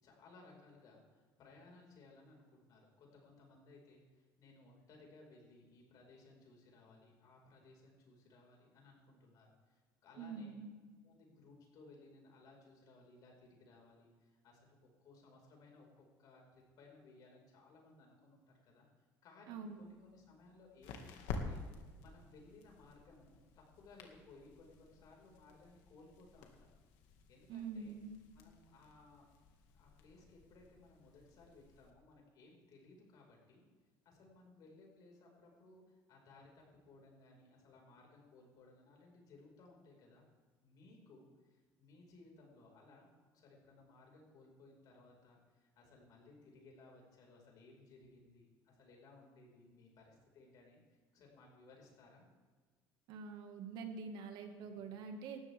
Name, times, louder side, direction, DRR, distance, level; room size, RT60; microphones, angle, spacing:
voice 1, 0.0-10.7 11.0-18.9 19.2-21.6 22.0-26.7 27.3-28.0 28.3-29.2 29.7-33.6 34.1-40.2 40.6-43.1 43.3-50.8 51.1-52.3 54.8-54.9, left 3 dB, 55° left, 0 dB, 5.2 m, -61 dB
voice 2, 10.2-10.7 19.5-19.8 27.5-28.2 53.1-55.4, right 5 dB, 65° right, 5 dB, 1.9 m, -46 dB
sound 1, 19.5-31.9, left 4 dB, 85° left, 2.0 m, -51 dB
18.5 x 13.5 x 3.6 m, 1.5 s
cardioid pair, 140°, 8 cm